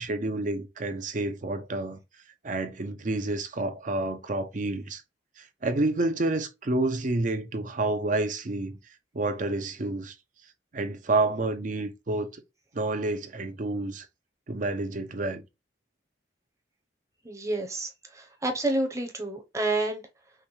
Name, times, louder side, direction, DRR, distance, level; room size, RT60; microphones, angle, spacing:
voice 1, 0.0-2.0 2.4-5.0 5.6-8.8 9.1-10.1 10.7-12.3 12.7-14.1 14.5-15.4, right 2 dB, 45° right, 0.6 m, -29 dB
voice 2, 17.2-20.0, right 2 dB, 15° right, 0.8 m, -29 dB
5.6 x 2.3 x 3.2 m
head